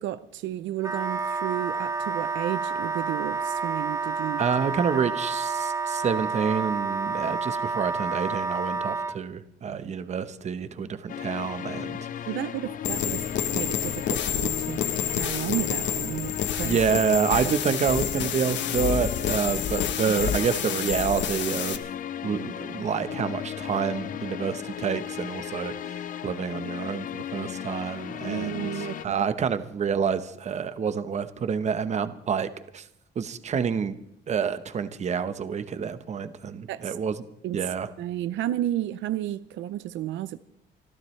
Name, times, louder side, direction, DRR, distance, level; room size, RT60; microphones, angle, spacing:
voice 1, 0.0-4.4 12.3-13.3 13.5-16.8 20.1-20.2 28.2-29.2 36.7-37.0 37.4-37.6 38.0-40.4, right 13 dB, 85° right, 0.6 m, -32 dB
Wind instrument woodwind instrument, 0.8-9.2, right 4 dB, 15° right, 0.4 m, -29 dB
voice 2, 4.4-12.1 16.6-21.8 22.2-26.0 26.2-28.7 29.0-32.8 33.2-33.9 34.3-37.1 37.5-37.9, right 6 dB, 35° right, 1.0 m, -28 dB
sound 1, 11.1-29.1, left 9 dB, 45° left, 0.6 m, -36 dB
sound 2, 12.8-21.8, left 9 dB, 70° left, 1.1 m, -29 dB
25.5 x 14.0 x 3.2 m
cardioid pair, 135°, 19 cm